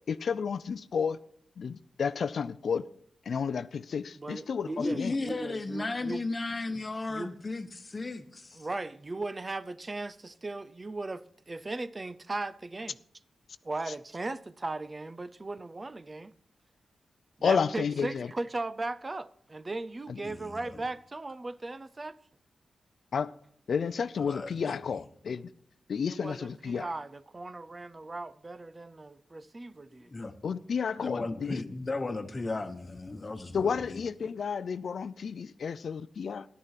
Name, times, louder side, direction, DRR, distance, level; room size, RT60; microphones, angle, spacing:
voice 1, 0.1-1.2 1.6-2.9 3.3-5.2 17.4-18.3 20.1-20.2 23.1-23.3 23.7-25.5 25.9-26.9 30.4-31.6 33.5-36.5, left 6 dB, 65° left, 0.5 m, -31 dB
voice 2, 4.2-6.2 7.1-7.3 8.6-13.0 13.6-16.3 17.4-22.2 26.1-30.1, right 2 dB, 25° right, 0.5 m, -37 dB
voice 3, 4.8-8.7 20.2-20.9 24.2-25.0 29.9-30.3 30.9-34.0, left 3 dB, 30° left, 1.2 m, -35 dB
14.0 x 11.0 x 5.8 m
wide cardioid pair, 125°, 0 cm